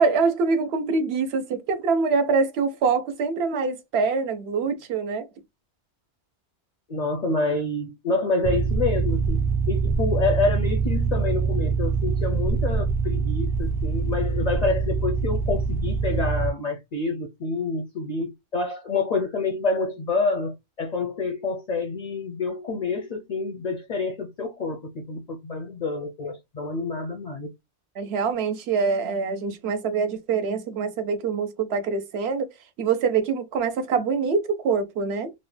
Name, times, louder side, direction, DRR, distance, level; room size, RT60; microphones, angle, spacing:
voice 1, 0.0-5.3 28.0-32.5 32.8-35.3, right 5 dB, 70° right, 0.8 m, -24 dB
voice 2, 6.9-27.5, left 3 dB, 50° left, 0.5 m, -27 dB
sound 1, 8.4-16.5, right 5 dB, 35° right, 0.3 m, -24 dB
2.6 x 2.1 x 3.2 m
omnidirectional pair, 1.2 m